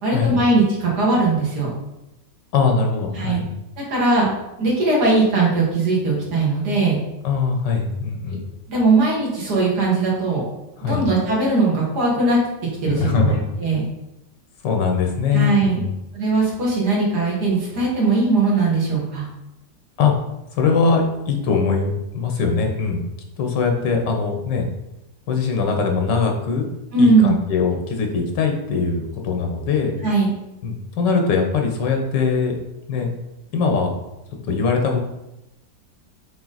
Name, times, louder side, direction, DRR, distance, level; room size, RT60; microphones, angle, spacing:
voice 1, 0.0-1.7 3.1-3.4 3.9-4.3 4.6-7.0 8.7-10.4 10.8-12.4 12.8-13.8 15.3-15.8 16.1-19.3 26.9-27.4 30.0-30.3, right 3 dB, 65° right, -4 dB, 2.6 m, -19 dB
voice 2, 2.5-3.5 7.2-8.5 10.8-11.0 12.9-13.4 14.6-15.9 20.0-20.1 20.5-23.0 23.4-24.6 25.3-26.7 27.0-29.9 30.6-32.6 32.9-33.1 33.5-33.9 34.5-35.0, left 5 dB, 90° left, 3 dB, 1.8 m, -21 dB
7.5 x 3.9 x 4.1 m, 0.92 s
omnidirectional pair, 1.9 m